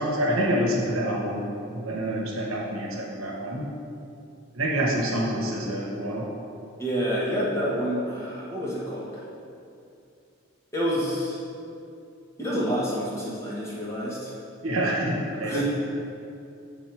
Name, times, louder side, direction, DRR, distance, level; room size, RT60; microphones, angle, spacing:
voice 1, 0.0-3.7 4.5-6.3 14.6-15.6, right 1 dB, 85° right, -2 dB, 1.1 m, -27 dB
voice 2, 6.8-9.1 10.7-11.4 12.4-14.3 15.3-15.6, equal, 15° left, -7 dB, 1.1 m, -28 dB
7.2 x 3.7 x 4.6 m, 2.5 s
head